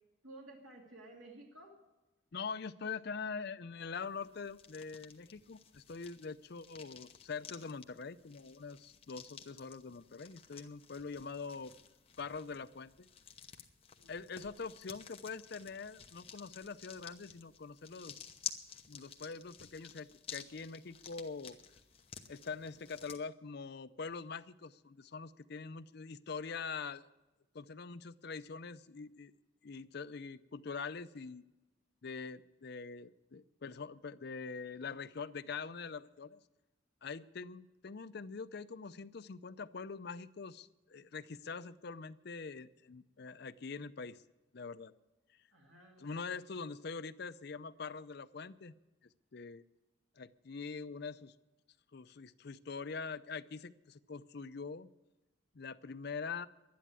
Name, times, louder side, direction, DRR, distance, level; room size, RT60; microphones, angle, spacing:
voice 1, 0.2-1.7 14.0-14.5 45.5-46.6, right 2 dB, 80° right, -1 dB, 2.5 m, -55 dB
voice 2, 2.3-11.7 12.2-13.1 14.1-18.4 18.9-21.6 22.3-27.1 27.5-29.3 29.6-31.4 32.0-36.4 37.0-44.2 44.5-44.9 46.0-48.7 49.3-49.6 50.2-51.3 51.9-54.9 55.5-56.5, left 5 dB, 50° left, 13 dB, 0.5 m, -44 dB
sound 1, 4.0-23.2, left 7 dB, 30° left, 0.9 m, -52 dB
12.0 x 10.5 x 8.8 m, 1.0 s
head